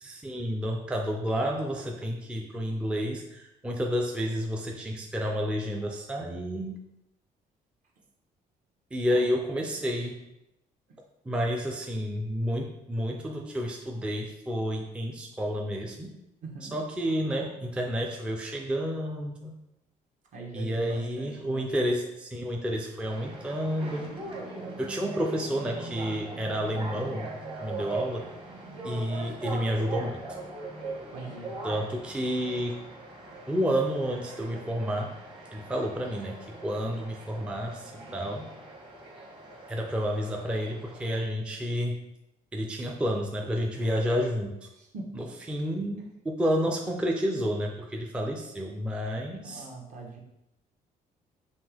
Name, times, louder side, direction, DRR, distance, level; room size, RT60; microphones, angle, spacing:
voice 1, 0.0-6.8 8.9-10.2 11.3-16.1 16.6-19.6 20.5-24.2 24.8-27.3 27.6-28.3 28.8-30.2 31.6-32.8 33.5-35.1 35.5-38.5 39.7-42.0 42.5-44.7 45.2-49.7, equal, 5° right, 1 dB, 0.4 m, -30 dB
voice 2, 16.4-16.8 20.3-21.7 31.1-31.6 44.8-45.2 49.4-50.2, right 3 dB, 55° right, -1 dB, 1.0 m, -42 dB
sound 1, 23.1-41.2, right 2 dB, 35° right, 1.1 m, -40 dB
5.3 x 2.8 x 3.4 m, 0.87 s
cardioid pair, 135°, 15 cm